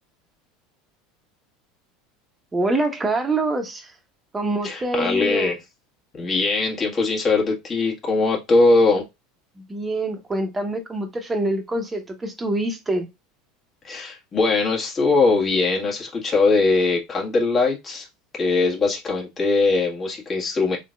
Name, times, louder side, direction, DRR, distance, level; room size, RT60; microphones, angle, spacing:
voice 1, 2.5-3.9 4.3-5.5 9.6-13.1, right 2 dB, 15° right, 1.1 m, -25 dB
voice 2, 4.6-5.6 6.1-9.1 13.8-18.1 18.3-20.8, left 3 dB, 30° left, 1.6 m, -21 dB
4.1 x 3.7 x 2.4 m
figure-of-eight pair, 75°, 0 cm